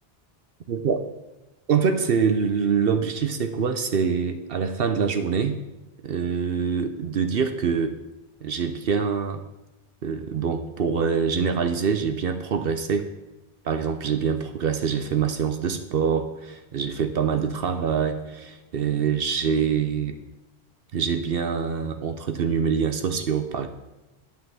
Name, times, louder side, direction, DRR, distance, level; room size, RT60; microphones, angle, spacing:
voice 1, 0.7-1.0 1.7-5.6 6.0-7.9 8.4-9.4 10.0-13.1 13.6-20.2 20.9-23.7, right 6 dB, 70° right, 8 dB, 0.9 m, -25 dB
8.7 x 5.6 x 7.6 m, 1.0 s
omnidirectional pair, 1.0 m